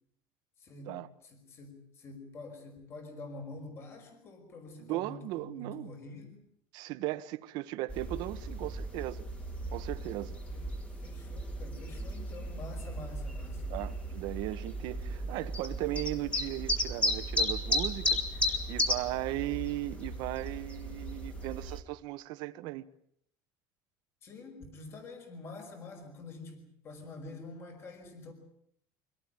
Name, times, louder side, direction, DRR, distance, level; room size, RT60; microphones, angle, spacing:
voice 1, 0.6-6.4 10.5-10.7 11.0-13.7 24.2-28.3, left 3 dB, 30° left, 5.4 m, -47 dB
voice 2, 4.8-5.9 6.7-9.2 9.7-10.4 13.7-22.8, right 17 dB, 60° right, 1.5 m, -37 dB
sound 1, 7.9-21.8, equal, 15° left, 2.8 m, -35 dB
25.5 x 18.0 x 9.1 m
cardioid pair, 165°, 8 cm